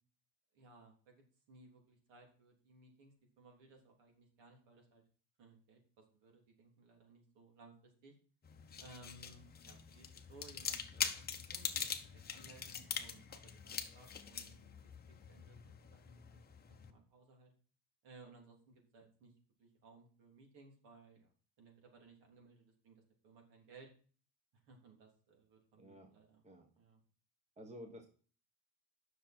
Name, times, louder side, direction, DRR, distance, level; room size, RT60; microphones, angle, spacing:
voice 1, 0.5-5.0 5.4-8.1 8.8-14.8 15.1-16.4 16.7-17.5 18.0-19.3 19.6-21.3 21.6-23.9 24.6-26.4 26.8-27.0, right 3 dB, 70° right, 1 dB, 3.4 m, -61 dB
sound 1, 8.4-16.9, left 7 dB, 20° left, 0.8 m, -44 dB
voice 2, 25.7-26.1 26.4-26.7 27.6-28.1, equal, 15° right, 4 dB, 1.2 m, -52 dB
10.0 x 6.5 x 4.4 m, 0.41 s
cardioid pair, 155°, 45 cm